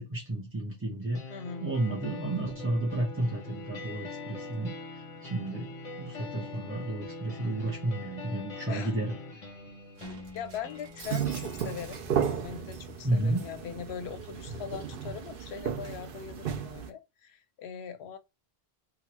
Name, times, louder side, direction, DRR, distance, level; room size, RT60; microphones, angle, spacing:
voice 1, 0.0-5.7 6.0-9.1 13.0-13.4, right 2 dB, 20° right, 0.4 m, -32 dB
sound 1, 1.1-15.1, left 3 dB, 40° left, 0.7 m, -44 dB
voice 2, 1.3-1.7 6.4-6.7 8.7-8.9 10.3-18.2, left 7 dB, 85° left, 0.8 m, -41 dB
Shatter, 10.0-12.8 13.2-16.4, right 4 dB, 90° right, 1.0 m, -51 dB
sound 2, 11.0-16.9, right 8 dB, 65° right, 0.7 m, -34 dB
2.9 x 2.4 x 2.9 m
omnidirectional pair, 1.0 m